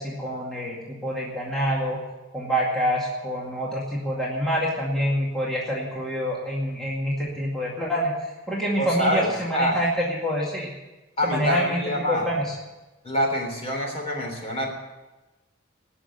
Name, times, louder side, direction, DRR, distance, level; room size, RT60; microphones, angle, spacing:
voice 1, 0.0-2.0 2.3-10.7 11.2-11.8 12.1-12.5, equal, 5° left, -5 dB, 2.2 m, -26 dB
voice 2, 8.8-9.8 11.2-12.3 13.0-14.7, equal, 35° left, 1 dB, 3.4 m, -26 dB
19.0 x 6.3 x 8.9 m, 1.1 s
head